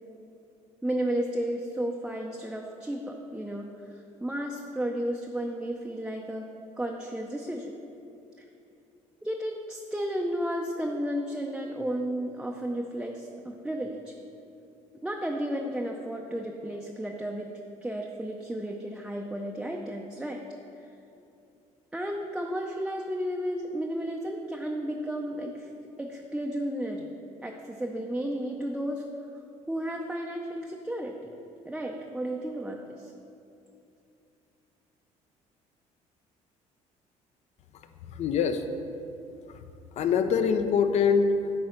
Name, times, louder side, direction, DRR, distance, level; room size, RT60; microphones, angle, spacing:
voice 1, 0.8-3.7 3.9-6.5 6.8-7.7 8.4-8.5 9.2-14.1 15.0-17.5 17.8-20.4 20.8-20.9 21.9-25.7 26.0-27.1 27.4-29.0 29.7-31.3 31.7-33.1, equal, 5° right, 1 dB, 0.5 m, -33 dB
voice 2, 37.7-38.7 39.5-39.6 39.9-41.6, left 6 dB, 60° left, 9 dB, 0.6 m, -25 dB
9.4 x 3.9 x 5.7 m, 2.7 s
cardioid pair, 110°, 13 cm